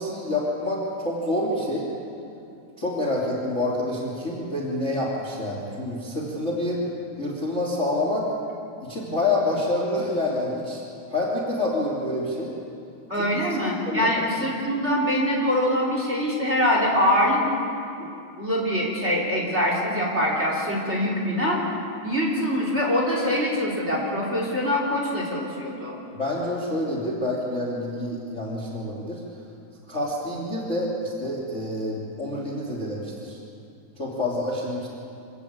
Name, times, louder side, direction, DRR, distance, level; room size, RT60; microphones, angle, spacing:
voice 1, 0.0-1.9 2.8-6.8 7.2-8.3 8.8-10.8 11.1-12.5 13.2-13.3 13.9-14.1 26.2-29.2 29.9-33.4 34.0-34.9, left 1 dB, 20° left, -2 dB, 2.7 m, -27 dB
voice 2, 13.1-17.4 18.0-18.1 18.4-21.6 22.0-26.0, equal, 20° right, -2 dB, 3.6 m, -24 dB
26.0 x 14.5 x 8.7 m, 2.6 s
omnidirectional pair, 4.0 m